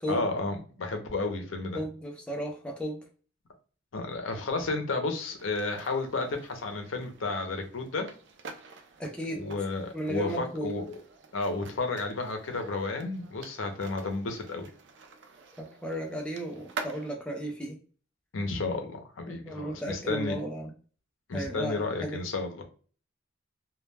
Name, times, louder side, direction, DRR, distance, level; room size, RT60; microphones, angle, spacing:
voice 1, 0.1-1.8 3.9-8.1 9.3-11.0 11.3-14.7 18.3-20.4 21.3-22.6, left 3 dB, 85° left, 5 dB, 0.6 m, -32 dB
voice 2, 1.7-3.0 9.0-9.5 9.9-10.7 15.6-17.8 19.3-20.7 21.3-22.2, right 1 dB, 5° left, 0 dB, 0.4 m, -34 dB
sound 1, 5.4-17.1, right 4 dB, 60° right, 0.4 m, -47 dB
2.3 x 2.1 x 3.2 m, 0.39 s
head